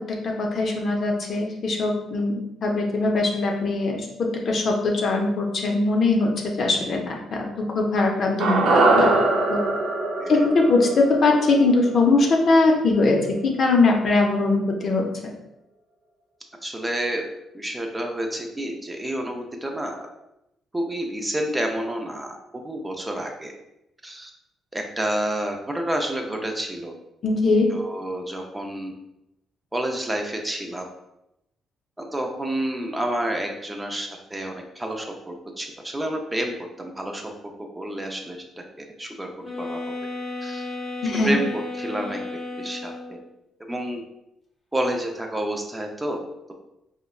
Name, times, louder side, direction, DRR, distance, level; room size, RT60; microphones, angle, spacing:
voice 1, 0.2-7.5 7.7-9.2 9.5-9.6 10.3-13.2 13.4-15.0 27.2-27.7 41.0-41.3, left 3 dB, 55° left, 1 dB, 0.6 m, -21 dB
sound 1, 8.4-12.7 13.0-13.1, right 2 dB, 75° right, 0.4 m, -22 dB
voice 2, 16.6-17.2 17.5-20.1 20.7-23.5 24.0-24.3 24.7-26.9 27.7-28.9 29.7-30.8 32.0-37.3 37.8-38.4 38.8-39.3 39.6-39.8 40.4-40.7 41.1-42.2 42.6-42.9 43.7-44.0 44.7-46.2, right 1 dB, 15° right, 2 dB, 0.4 m, -29 dB
sound 2, 39.4-43.3, left 2 dB, 25° left, 0.8 m, -33 dB
3.8 x 2.1 x 2.3 m, 0.85 s
cardioid pair, 90°, 0 cm